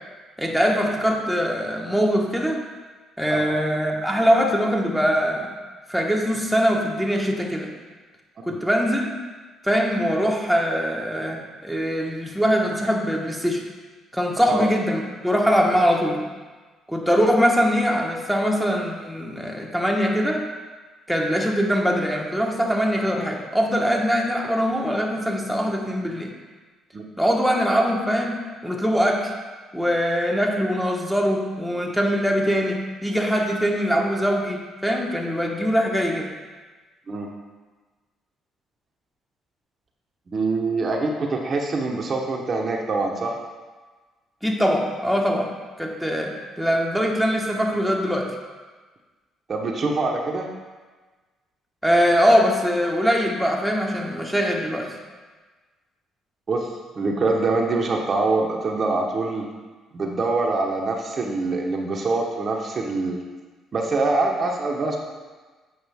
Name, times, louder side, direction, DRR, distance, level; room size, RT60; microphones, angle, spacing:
voice 1, 0.4-2.6 3.2-5.5 5.9-7.7 8.5-9.2 9.6-13.6 14.1-16.2 16.9-20.4 21.1-26.3 27.2-29.3 29.7-36.3 44.4-45.5 45.8-48.3 51.8-54.9, equal, ahead, 0 dB, 1.2 m, -22 dB
voice 2, 40.3-43.4 49.5-50.5 56.5-56.7 57.0-59.5 59.9-63.2 63.7-65.0, right 3 dB, 45° right, 0 dB, 0.9 m, -24 dB
8.0 x 5.2 x 3.5 m, 1.3 s
supercardioid pair, 60°, 0 cm